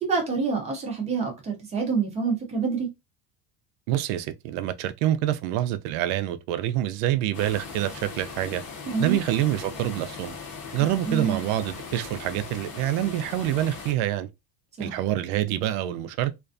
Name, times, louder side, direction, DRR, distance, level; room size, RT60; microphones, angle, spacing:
voice 1, 0.0-2.9 8.9-9.2 11.0-11.4 14.8-15.0, right 5 dB, 15° right, 0.4 m, -27 dB
voice 2, 3.9-8.6 9.0-10.4 10.7-14.3 14.8-16.3, right 13 dB, 85° right, 0.5 m, -26 dB
sound 1, 7.3-13.9, left 5 dB, 40° left, 0.7 m, -39 dB
2.5 x 2.2 x 2.5 m
cardioid pair, 180°, 40 cm